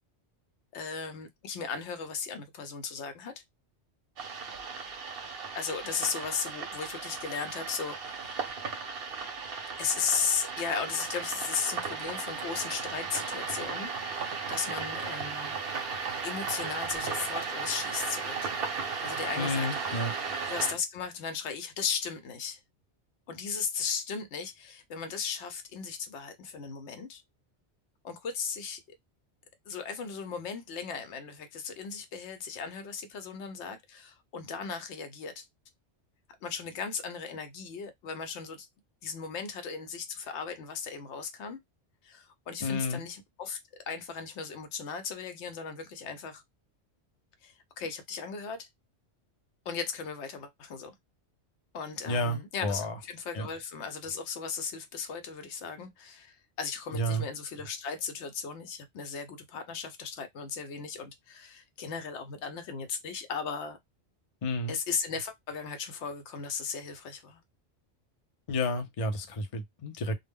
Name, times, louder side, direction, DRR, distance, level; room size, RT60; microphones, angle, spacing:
voice 1, 0.7-3.3 5.6-8.7 9.8-15.6 16.2-18.5 19.0-20.1 20.5-22.6 23.3-27.2 28.0-28.8 29.7-35.4 36.4-38.7 39.0-41.6 42.0-43.6 43.9-46.4 47.4-48.7 49.7-50.9 51.7-63.8 64.7-67.4, left 6 dB, 75° left, 0.9 m, -36 dB
sound 1, 4.2-20.7, right 5 dB, 60° right, 0.8 m, -36 dB
voice 2, 19.4-20.1 42.6-43.0 52.1-52.9 53.3-53.5 56.9-57.3 64.4-64.7 68.5-70.1, left 1 dB, 45° left, 0.5 m, -31 dB
2.1 x 2.0 x 3.5 m
omnidirectional pair, 1.2 m